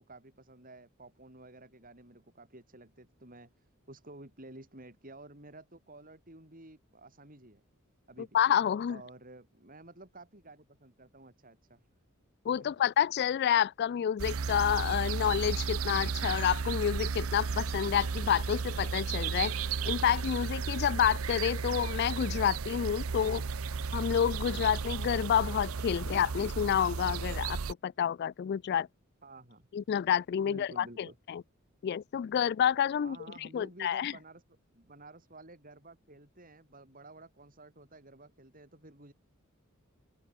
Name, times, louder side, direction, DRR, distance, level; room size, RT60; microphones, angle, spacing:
voice 1, 0.1-7.6 8.1-8.4 8.9-11.9 29.2-29.7 30.4-31.2 33.0-34.4 34.7-39.1, right 2 dB, 40° right, 7.1 m, -52 dB
voice 2, 8.3-9.0 12.5-19.5 19.9-23.4 23.9-27.6 27.8-28.9 29.7-31.4 31.8-33.2 33.5-34.1, left 9 dB, 50° left, 0.3 m, -29 dB
sound 1, 14.2-27.7, right 5 dB, 90° right, 0.7 m, -34 dB
open air
head